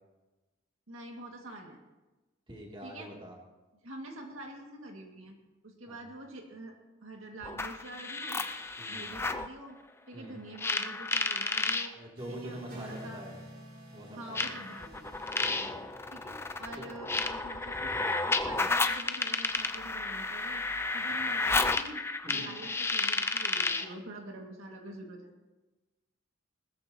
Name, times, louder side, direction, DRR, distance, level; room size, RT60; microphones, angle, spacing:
voice 1, 0.9-1.8 2.8-3.1 3.8-5.4 5.6-8.4 8.9-9.8 10.1-11.9 12.3-13.2 14.1-15.2 16.1-20.6 20.9-25.3, right 1 dB, 75° right, 1 dB, 2.0 m, -46 dB
voice 2, 2.5-3.4 5.9-6.0 8.8-9.0 10.1-10.4 11.9-13.4 13.9-14.4 15.4-15.8 16.8-16.9 22.2-22.5, right 1 dB, 25° right, -2 dB, 2.6 m, -45 dB
sound 1, 7.4-9.5 10.6-11.9 13.0-13.1 14.4-23.9, left 3 dB, 10° left, 0.4 m, -32 dB
sound 2, 12.2-16.4, equal, 45° right, 3.2 m, -48 dB
19.5 x 14.0 x 2.9 m, 1.1 s
head